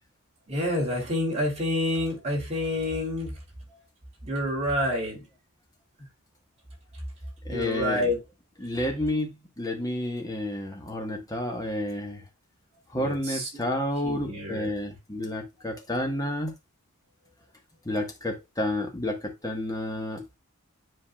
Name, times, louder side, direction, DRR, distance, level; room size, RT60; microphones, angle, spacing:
voice 1, 0.5-3.4 3.7-3.8 4.2-5.2 7.5-8.2 12.9-13.5 14.0-14.7, left 1 dB, 30° right, 3.1 m, -28 dB
voice 2, 7.4-8.0 8.6-12.2 12.9-16.5 17.8-20.2, left 1 dB, 15° left, 1.4 m, -30 dB
10.0 x 4.0 x 2.4 m
head